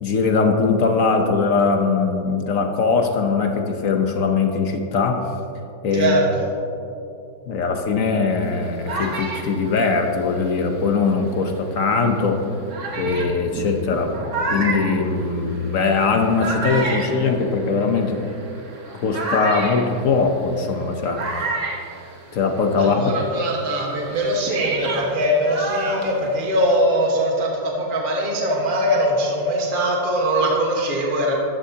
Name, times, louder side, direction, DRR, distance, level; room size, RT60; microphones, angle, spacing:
voice 1, 0.0-5.2 5.8-6.1 7.5-12.4 13.0-14.1 14.5-18.2 19.0-21.2 22.3-23.2, left 4 dB, 55° left, 4 dB, 1.1 m, -21 dB
voice 2, 5.9-6.5 22.8-31.3, equal, 30° right, -2 dB, 1.4 m, -21 dB
sound 1, 8.4-11.4 12.1-12.2 12.7-22.7 23.0-26.8, right 2 dB, 45° right, 1.4 m, -30 dB
13.5 x 11.5 x 2.8 m, 2.6 s
omnidirectional pair, 1.9 m